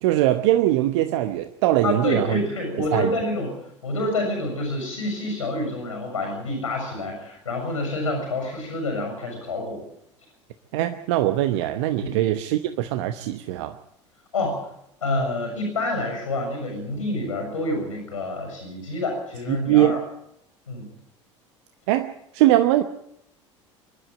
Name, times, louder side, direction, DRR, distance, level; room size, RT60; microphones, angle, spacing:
voice 1, 0.0-2.4 2.8-3.1 10.7-13.8 19.5-20.0 21.9-22.8, right 14 dB, 65° right, 9 dB, 1.0 m, -21 dB
voice 2, 1.8-3.5 3.8-9.8 12.0-12.2 14.3-14.6 15.0-20.0 20.7-20.9, left 2 dB, 85° left, 2 dB, 6.4 m, -27 dB
24.5 x 11.5 x 9.0 m, 0.77 s
figure-of-eight pair, 70°, 16 cm